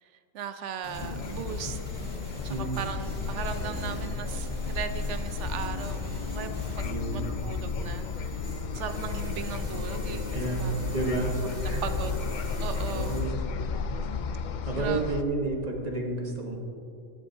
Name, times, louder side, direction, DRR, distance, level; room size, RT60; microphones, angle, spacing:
voice 1, 0.0-1.8 2.4-6.5 6.8-10.3 10.6-10.7 11.8-12.1 12.6-13.2 14.7-15.2, right 7 dB, 70° right, 9 dB, 0.9 m, -38 dB
sound 1, 0.8-8.3, equal, 10° left, 1.5 m, -45 dB
sound 2, 0.9-13.2, equal, 50° right, 2.4 m, -43 dB
sound 3, 1.0-15.2, left 5 dB, 80° left, 0.4 m, -33 dB
voice 2, 6.8-7.4 10.3-11.3 11.6-11.8 12.9-13.4 14.7-16.6, right 2 dB, 35° right, 1 dB, 1.1 m, -31 dB
16.0 x 9.8 x 2.7 m, 2.6 s
omnidirectional pair, 1.3 m